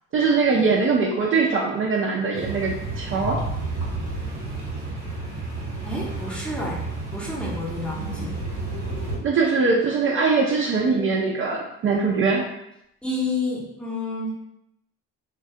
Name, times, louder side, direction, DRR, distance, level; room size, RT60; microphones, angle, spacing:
voice 1, 0.1-3.4 9.2-12.5, right 4 dB, 45° right, -1 dB, 0.4 m, -22 dB
sound 1, 2.3-9.2, right 2 dB, 85° right, 0.9 m, -31 dB
voice 2, 5.8-6.8 7.1-8.4 13.0-14.3, left 2 dB, 5° left, -5 dB, 0.6 m, -29 dB
2.2 x 2.1 x 2.7 m, 0.81 s
cardioid pair, 90°, 30 cm